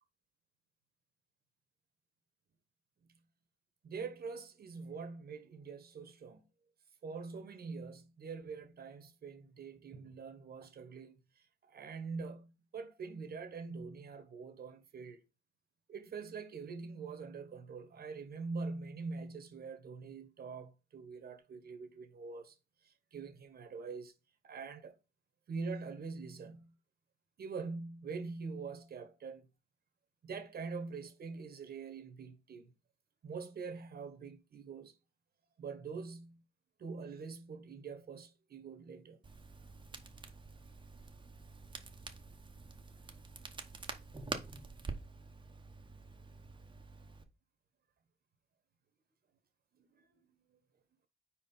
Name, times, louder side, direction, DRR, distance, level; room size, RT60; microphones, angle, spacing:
voice 1, 3.8-6.4 7.0-15.2 15.9-22.6 22.8-24.1 24.4-24.9 25.5-26.7 27.4-29.5 30.2-32.7 33.2-34.9 35.6-36.4 36.8-39.2 49.8-50.1, right 4 dB, 50° right, 1.4 m, -44 dB
Crackle, 39.2-47.2, right 3 dB, 25° right, 1.1 m, -47 dB
4.6 x 4.6 x 5.6 m
cardioid pair, 90°, 20 cm